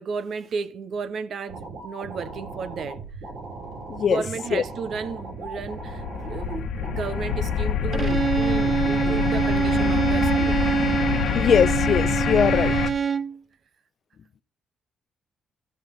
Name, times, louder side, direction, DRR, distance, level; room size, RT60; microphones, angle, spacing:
voice 1, 0.0-3.0 4.0-10.6, right 5 dB, 60° right, 1.0 m, -33 dB
sound 1, 1.5-11.5, right 3 dB, 90° right, 6.6 m, -38 dB
voice 2, 3.9-4.2 4.5-4.6 11.4-12.7, left 7 dB, 55° left, 0.4 m, -21 dB
sound 2, 4.5-12.9, left 8 dB, 70° left, 1.1 m, -26 dB
Bowed string instrument, 7.9-13.4, right 7 dB, 45° right, 0.5 m, -25 dB
13.5 x 5.8 x 5.4 m
cardioid pair, 90°, 0 cm